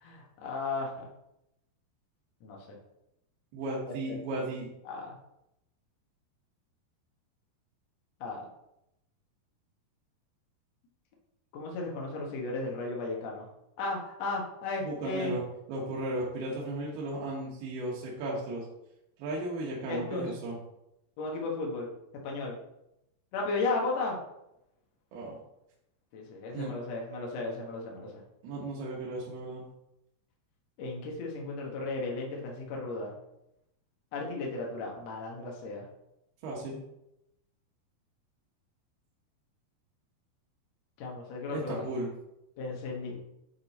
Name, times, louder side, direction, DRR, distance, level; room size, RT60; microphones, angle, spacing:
voice 1, 0.0-1.1 2.4-2.6 4.1-4.2 4.9-5.2 8.2-8.5 11.5-13.5 13.8-15.4 19.9-20.3 21.2-21.9 22.2-22.6 23.3-24.2 26.1-28.2 30.8-33.1 34.1-35.9 41.0-41.9 42.6-43.2, left 3 dB, 60° left, -2 dB, 1.8 m, -35 dB
voice 2, 3.5-4.7 14.8-15.4 15.7-18.7 19.2-20.6 25.1-25.4 26.5-26.7 28.4-29.6 36.4-36.8 41.5-42.1, right 2 dB, 80° right, -4 dB, 3.2 m, -35 dB
9.5 x 3.8 x 4.1 m, 0.85 s
omnidirectional pair, 4.5 m